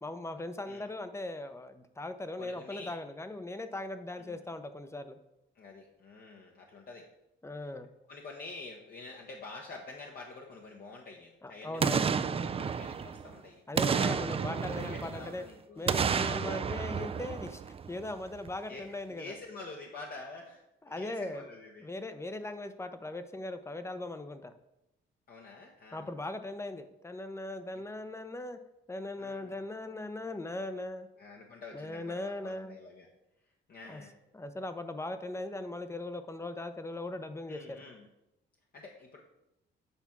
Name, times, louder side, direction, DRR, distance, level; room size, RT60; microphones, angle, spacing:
voice 1, 0.0-5.2 7.4-7.9 11.4-12.1 13.7-15.4 15.8-17.6 17.9-19.3 20.8-21.4 21.8-24.5 25.9-28.6 28.9-31.1 31.7-32.8 33.8-34.0 34.3-37.8, left 2 dB, 15° left, 10 dB, 0.6 m, -39 dB
voice 2, 2.4-2.9 4.2-4.4 5.5-7.1 8.1-13.6 13.9-15.9 18.7-21.9 25.3-26.1 27.7-27.8 29.2-29.5 31.2-33.1 33.7-34.1 37.5-38.0 38.7-39.2, left 3 dB, 50° left, 0 dB, 1.0 m, -47 dB
Boom, 11.8-13.3 13.8-15.4 15.9-18.1 18.5-18.6, right 6 dB, 30° right, 0.4 m, -31 dB
8.1 x 3.5 x 5.9 m, 0.90 s
cardioid pair, 90°, 20 cm